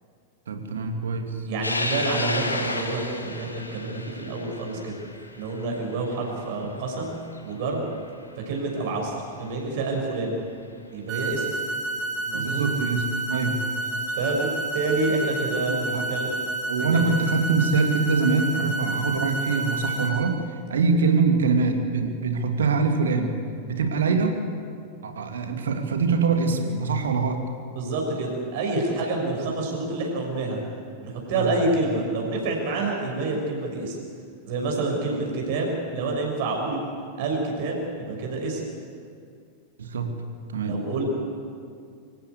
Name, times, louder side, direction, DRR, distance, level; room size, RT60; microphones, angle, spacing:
voice 1, 0.5-1.3 12.3-13.6 15.7-16.0 16.7-20.4 20.7-23.3 23.7-24.4 25.0-27.4 31.3-31.5 39.8-40.1 40.5-40.8, right 4 dB, 65° right, 5 dB, 2.4 m, -24 dB
voice 2, 1.4-4.9 5.3-7.1 7.4-7.8 8.5-10.4 10.9-11.5 12.2-12.6 14.2-14.5 14.7-16.3 16.8-17.1 20.7-20.9 27.7-30.6 31.0-34.0 34.4-36.8 37.2-38.6 40.6-41.0, right 3 dB, 50° right, 0 dB, 6.3 m, -28 dB
sound 1, 1.6-8.3 8.8-8.9 10.1-10.2 12.4-12.5 13.8-14.1, left 2 dB, 80° left, 1.7 m, -33 dB
sound 2, 11.1-20.1, right 2 dB, 35° right, 5.9 m, -30 dB
25.5 x 15.0 x 8.3 m, 2.3 s
figure-of-eight pair, 90°, 0 cm